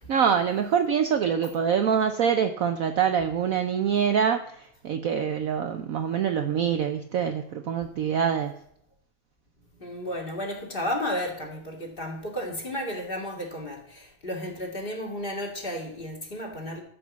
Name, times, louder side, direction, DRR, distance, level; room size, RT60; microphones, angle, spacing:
voice 1, 0.1-8.5, right 7 dB, 80° right, 7 dB, 0.7 m, -25 dB
voice 2, 9.8-16.8, left 1 dB, 25° left, 2 dB, 2.3 m, -33 dB
13.5 x 5.2 x 7.3 m, 0.70 s
omnidirectional pair, 2.2 m